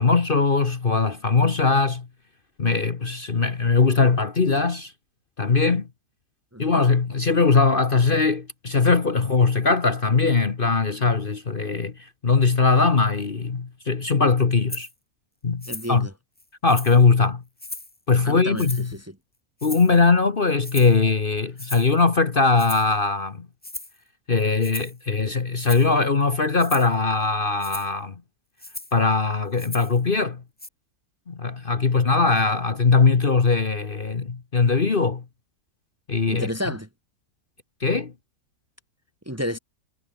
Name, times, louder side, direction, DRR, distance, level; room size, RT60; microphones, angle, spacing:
voice 1, 0.0-2.1 2.6-4.9 5.4-5.9 6.6-14.9 15.4-16.1 16.6-17.4 18.1-18.9 19.6-23.5 24.3-28.1 28.9-30.4 31.3-35.2 36.1-36.5 37.8-38.1, left 4 dB, 35° left, 1.4 m, -20 dB
Rattle (instrument), 14.7-14.9 15.6-16.0 16.4-17.0 17.6-18.0 18.6-19.0 19.6-20.0 20.6-21.0 21.6-21.9 22.6-23.0 23.6-24.0 24.6-25.0 25.6-25.9 26.6-26.9 27.6-27.9 28.6-29.0 29.6-30.0 30.6-30.7, left 2 dB, 10° left, 0.5 m, -37 dB
voice 2, 15.7-16.1 18.2-19.0 36.3-36.9 39.3-39.6, equal, 10° right, 1.5 m, -30 dB
omnidirectional pair, 1.6 m